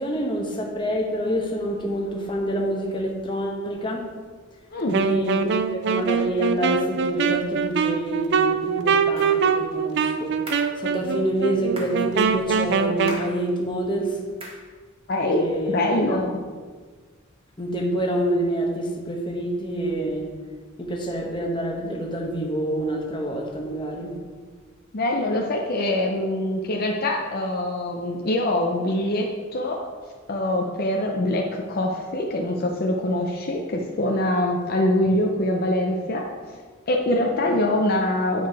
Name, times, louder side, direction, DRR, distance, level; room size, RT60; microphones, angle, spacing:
voice 1, 0.0-4.0 4.9-14.2 15.3-16.2 17.6-20.3 20.8-24.2, right 1 dB, 25° left, 0 dB, 1.1 m, -27 dB
Wind instrument woodwind instrument, 4.9-13.2, right 6 dB, 60° right, 0.4 m, -23 dB
sound 1, 9.2-9.4 10.5-10.8 11.8-12.0 13.1-13.4 14.4-14.7, right 1 dB, 30° right, 1.6 m, -37 dB
voice 2, 15.1-16.4 24.9-29.8 30.3-36.3 36.9-38.5, left 1 dB, 50° left, 0 dB, 0.6 m, -24 dB
8.4 x 4.7 x 4.7 m, 1.5 s
head